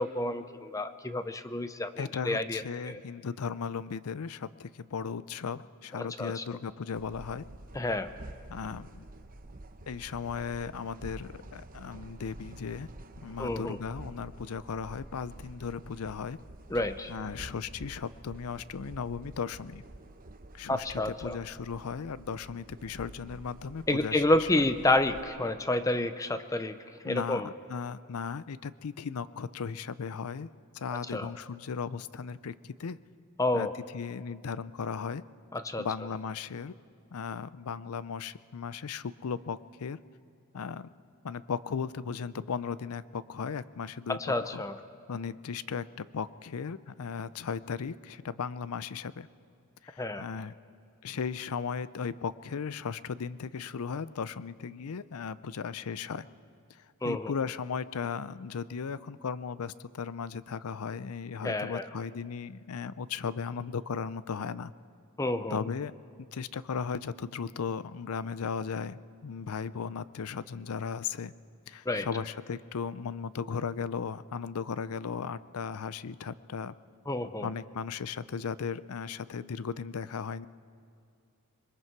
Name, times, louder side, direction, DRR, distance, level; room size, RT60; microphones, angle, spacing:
voice 1, 0.0-3.0 6.0-6.4 7.7-8.1 13.4-13.8 16.7-17.1 20.7-21.4 23.9-26.8 27.0-27.5 31.1-31.3 33.4-33.7 35.5-35.9 44.1-44.7 50.0-50.2 57.0-57.3 61.4-61.9 65.2-65.6 71.9-72.1 77.1-77.5, left 2 dB, 15° left, 11 dB, 0.5 m, -29 dB
voice 2, 2.0-7.4 8.5-9.0 9.9-12.9 13.2-16.4 17.1-19.8 20.5-24.7 27.0-30.5 30.7-33.0 33.5-33.7 33.9-35.2 35.8-36.7 37.1-40.0 40.5-40.9 41.2-44.6 45.1-49.3 49.8-50.5 51.0-56.3 57.0-64.7 65.5-65.9 66.3-71.3 71.7-76.7 77.4-80.5, left 6 dB, 80° left, 16 dB, 0.5 m, -36 dB
sound 1, 6.9-25.2, right 1 dB, 40° right, 0.9 m, -48 dB
26.5 x 21.5 x 4.6 m, 2.4 s
head